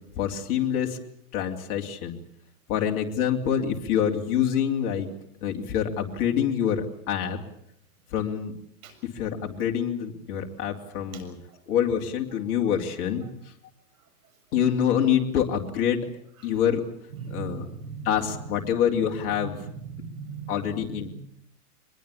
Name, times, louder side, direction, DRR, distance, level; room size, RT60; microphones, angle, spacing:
voice 1, 0.1-1.0 1.3-2.2 2.7-5.1 5.4-7.4 8.1-8.5 9.0-11.4 11.7-13.3 14.5-16.1 16.4-16.8 17.3-17.6 18.0-19.6 20.5-21.1, left 9 dB, 35° left, 2 dB, 3.0 m, -26 dB
voice 2, 17.1-18.1 19.4-21.1, right 5 dB, 60° right, 9 dB, 7.1 m, -38 dB
23.5 x 21.5 x 8.4 m, 0.70 s
hypercardioid pair, 145°, 46 cm